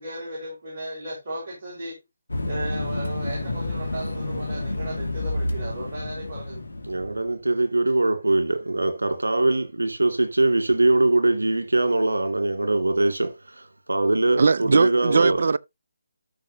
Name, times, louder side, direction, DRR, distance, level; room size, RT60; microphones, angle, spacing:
voice 1, 0.0-2.0 2.5-6.6, right 1 dB, 40° right, 4.8 m, -35 dB
sound 1, 2.3-7.4, left 2 dB, 75° left, 2.5 m, -30 dB
voice 2, 6.9-15.4, right 2 dB, 80° right, 2.4 m, -22 dB
voice 3, 14.4-15.6, right 4 dB, 55° right, 0.5 m, -20 dB
13.5 x 5.9 x 2.9 m
figure-of-eight pair, 150°, 0 cm